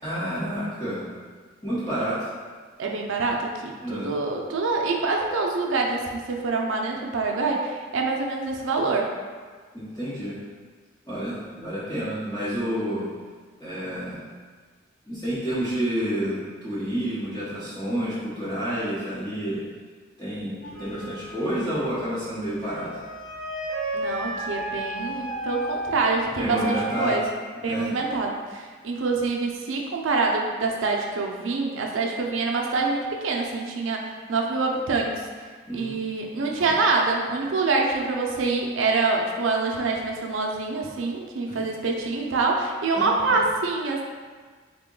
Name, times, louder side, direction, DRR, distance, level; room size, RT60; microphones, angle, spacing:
voice 1, 0.0-1.0 1.6-2.3 3.8-4.1 9.7-10.4 11.1-13.0 13.6-14.2 15.1-19.6 20.2-23.0 26.4-27.2 27.7-27.9 35.7-36.0 36.5-36.7 41.5-41.6 42.9-43.4, equal, 20° left, -13 dB, 0.8 m, -29 dB
voice 2, 2.8-9.1 23.9-27.2 27.6-35.2 35.7-44.0, right 3 dB, 85° right, 1 dB, 0.5 m, -26 dB
sound 1, 20.6-27.2, right 1 dB, 80° left, 0.9 m, -32 dB
3.6 x 2.2 x 3.8 m, 1.5 s
head